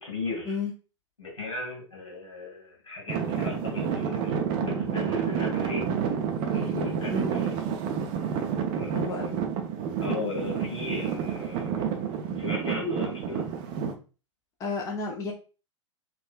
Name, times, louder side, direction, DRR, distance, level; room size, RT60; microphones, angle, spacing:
voice 1, 0.0-0.5 1.2-5.8 6.5-7.1 8.7-9.2 10.0-12.0 12.4-13.5, left 3 dB, 80° left, -3 dB, 1.5 m, -36 dB
Traffic noise roadway noise / Engine, 3.1-13.9, right 7 dB, 30° right, 0.5 m, -29 dB
voice 2, 8.9-9.4 14.6-15.3, left 4 dB, 20° left, 1 dB, 0.5 m, -32 dB
3.5 x 2.4 x 2.2 m, 0.35 s
figure-of-eight pair, 95°, 16 cm